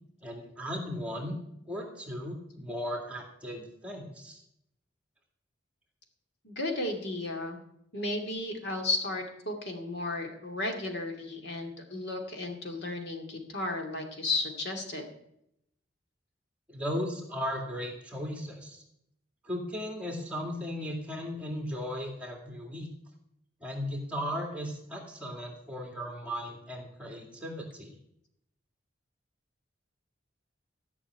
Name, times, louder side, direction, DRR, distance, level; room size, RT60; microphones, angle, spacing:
voice 1, 0.2-1.4 1.7-4.4 16.7-18.8 19.4-22.9 23.6-28.0, equal, 5° right, 1 dB, 2.2 m, -36 dB
voice 2, 6.4-7.6 7.9-15.0, left 2 dB, 55° left, 2 dB, 2.6 m, -34 dB
15.0 x 6.2 x 9.4 m, 0.77 s
head